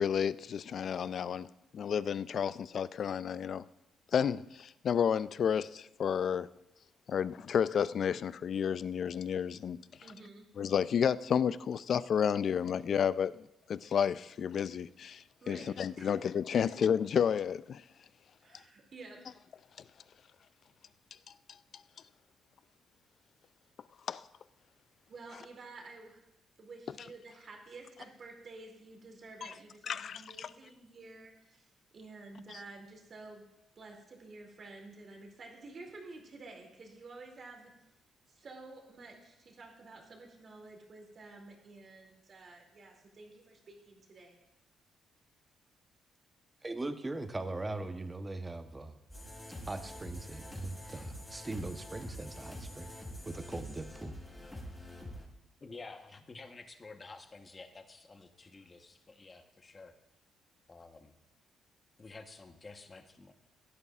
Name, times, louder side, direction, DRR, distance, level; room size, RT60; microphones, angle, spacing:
voice 1, 0.0-1.5 1.7-3.7 4.1-6.5 7.1-9.8 10.6-13.4 13.7-17.8 24.1-24.2 29.4-29.5 29.9-30.5, left 8 dB, 55° left, 0.4 m, -31 dB
voice 2, 10.0-10.5 15.4-16.1 16.5-16.6 18.4-19.2 25.1-26.2 26.6-33.5 33.8-37.7 38.3-44.4, right 3 dB, 45° right, 2.7 m, -51 dB
voice 3, 46.6-48.9 49.6-52.9 53.3-54.2, right 2 dB, 20° right, 0.9 m, -40 dB
sound 1, 49.1-55.3, equal, 15° left, 4.7 m, -45 dB
voice 4, 55.6-59.9 60.7-61.1 62.0-63.3, left 3 dB, 30° left, 1.0 m, -51 dB
17.0 x 11.0 x 2.4 m
cardioid pair, 90°, 0 cm